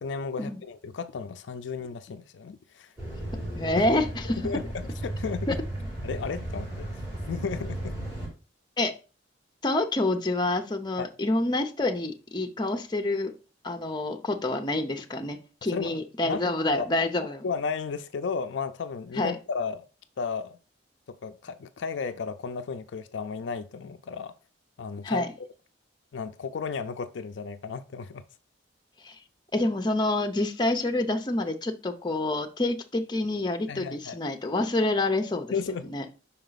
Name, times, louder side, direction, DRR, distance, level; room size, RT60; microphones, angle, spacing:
voice 1, 0.0-2.9 4.3-5.6 6.0-6.9 7.3-7.8 11.0-11.1 15.7-16.4 16.7-16.9 17.4-19.9 20.2-20.6 21.1-24.4 24.8-25.5 26.1-28.2 33.7-34.2 35.5-36.0, left 5 dB, 70° left, 0.4 m, -34 dB
sound 1, 3.0-8.3, right 1 dB, 15° right, 3.3 m, -35 dB
voice 2, 3.5-4.4 5.5-5.6 8.8-8.9 9.6-13.3 13.6-17.4 19.2-19.4 25.0-25.3 29.0-29.2 29.5-35.5 35.9-36.0, left 2 dB, 25° left, 0.7 m, -27 dB
5.7 x 4.5 x 3.9 m
head